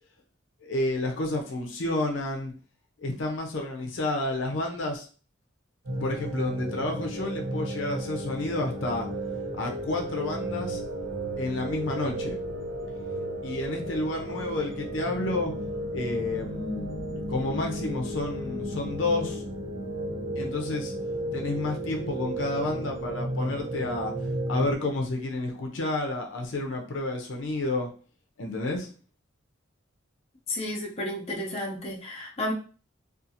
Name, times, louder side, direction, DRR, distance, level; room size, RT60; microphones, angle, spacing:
voice 1, 0.6-2.5 3.0-5.1 6.0-9.1 9.5-10.8 11.4-12.4 13.4-15.5 15.9-17.0 17.3-19.4 20.4-20.9 21.3-27.9 28.4-28.9, left 2 dB, 80° left, 2 dB, 0.5 m, -30 dB
sound 1, 5.8-24.8, right 1 dB, 80° right, 0.8 m, -33 dB
voice 2, 30.5-32.5, left 1 dB, 35° left, -2 dB, 0.6 m, -32 dB
2.5 x 2.4 x 2.7 m, 0.39 s
head